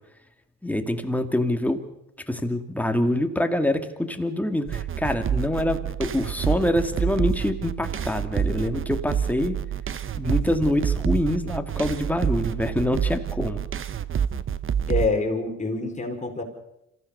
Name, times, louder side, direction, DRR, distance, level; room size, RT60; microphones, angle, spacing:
voice 1, 0.6-1.8 2.3-9.6 10.2-13.6, left 1 dB, 5° left, 6 dB, 2.3 m, -25 dB
sound 1, 4.7-15.1, right 8 dB, 45° right, 1.0 m, -28 dB
voice 2, 14.9-16.4, left 3 dB, 25° left, 3 dB, 4.8 m, -26 dB
26.5 x 16.0 x 6.8 m, 0.83 s
cardioid pair, 90°, 30 cm